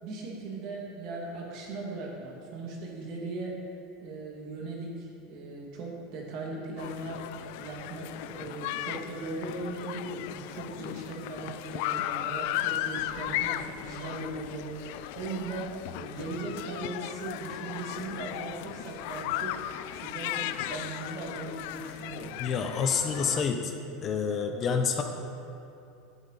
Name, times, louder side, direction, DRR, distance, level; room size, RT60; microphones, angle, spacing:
voice 1, 0.0-3.7 4.0-7.3 7.6-19.6 19.9-22.3, right 2 dB, 50° right, -1 dB, 2.2 m, -38 dB
sound 1, 6.8-23.4, left 13 dB, 65° left, 0.3 m, -36 dB
voice 2, 22.4-23.7 24.0-25.0, left 6 dB, 30° left, 5 dB, 0.7 m, -28 dB
11.5 x 8.1 x 4.0 m, 2.7 s
supercardioid pair, 150°, 0 cm